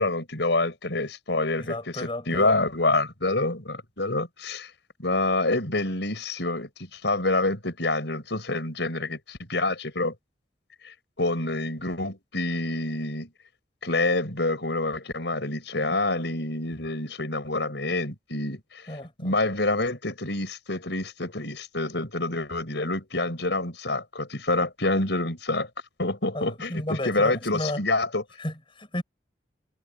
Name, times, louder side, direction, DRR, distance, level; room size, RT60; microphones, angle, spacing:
voice 1, 0.0-4.7 5.0-10.1 10.8-13.3 13.8-18.8 19.2-25.7 26.0-28.2, left 2 dB, 70° left, 6.3 m, -27 dB
voice 2, 1.6-2.5 15.8-16.0 18.9-19.4 26.1-27.8 28.4-29.0, left 1 dB, 30° left, 6.8 m, -33 dB
head